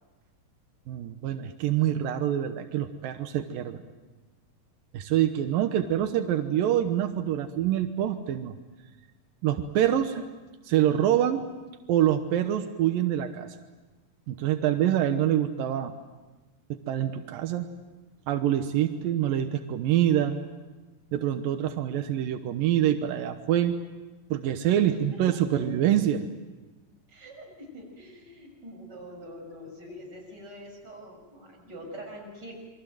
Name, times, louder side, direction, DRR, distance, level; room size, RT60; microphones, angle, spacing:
voice 1, 0.9-3.8 4.9-8.5 9.4-10.3 10.7-11.4 11.9-13.5 14.3-16.0 16.7-17.7 18.3-20.4 21.1-23.8 24.3-26.2, right 11 dB, 85° right, 7 dB, 2.8 m, -25 dB
voice 2, 24.9-25.9 27.1-32.5, equal, 30° right, 0 dB, 7.2 m, -44 dB
28.0 x 23.5 x 7.8 m, 1.2 s
omnidirectional pair, 4.0 m